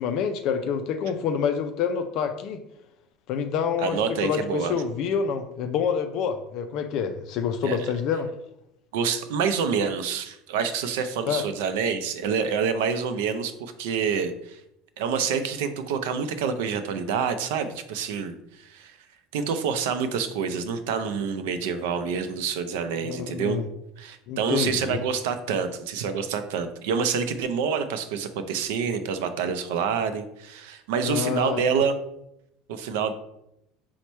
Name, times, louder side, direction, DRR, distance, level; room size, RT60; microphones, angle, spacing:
voice 1, 0.0-2.6 3.3-8.3 11.3-11.4 23.0-23.7 24.3-25.0 31.0-31.6, left 7 dB, 50° left, 7 dB, 0.3 m, -27 dB
voice 2, 3.8-4.7 7.6-7.8 8.9-14.6 15.0-18.9 19.3-23.6 24.0-31.9 32.7-33.1, right 6 dB, 85° right, 9 dB, 0.4 m, -27 dB
4.4 x 2.1 x 4.2 m, 0.82 s
cardioid pair, 155°, 0 cm